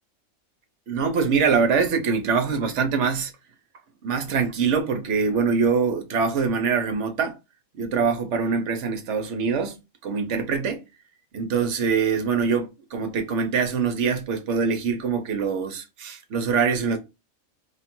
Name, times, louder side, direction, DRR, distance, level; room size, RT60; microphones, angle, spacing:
voice 1, 0.9-3.3 4.0-7.4 7.7-10.8 11.3-17.0, right 5 dB, 60° right, 1.0 m, -24 dB
3.1 x 2.4 x 4.4 m
omnidirectional pair, 1.5 m